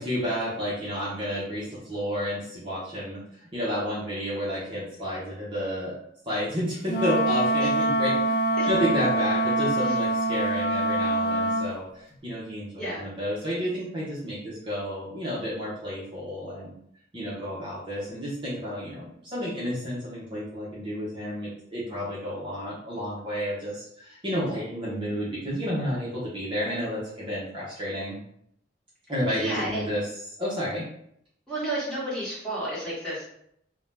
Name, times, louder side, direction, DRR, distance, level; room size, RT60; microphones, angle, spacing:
voice 1, 0.0-5.9 6.3-8.2 8.7-16.7 17.1-28.2 29.1-30.1 30.4-30.9, equal, 30° right, -8 dB, 0.7 m, -31 dB
Wind instrument woodwind instrument, 6.9-11.7, right 1 dB, 70° left, 0.8 m, -24 dB
voice 2, 29.3-30.0 31.5-33.2, right 1 dB, 5° left, -10 dB, 1.3 m, -32 dB
2.6 x 2.1 x 3.2 m, 0.72 s
head